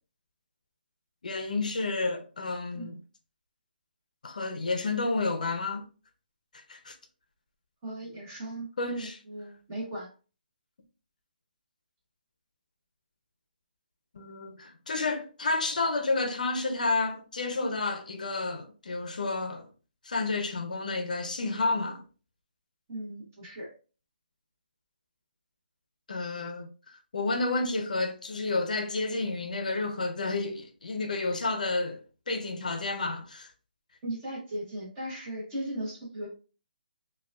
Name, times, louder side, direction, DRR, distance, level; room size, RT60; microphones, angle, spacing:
voice 1, 1.2-3.0 4.2-5.9 6.7-6.9 8.8-9.2 14.1-19.6 20.0-22.0 26.1-33.5, left 3 dB, 55° left, 0.6 m, -30 dB
voice 2, 7.8-10.1 22.9-23.7 34.0-36.3, right 1 dB, 15° right, 1.0 m, -37 dB
5.0 x 2.3 x 2.3 m
hypercardioid pair, 175°, 5 cm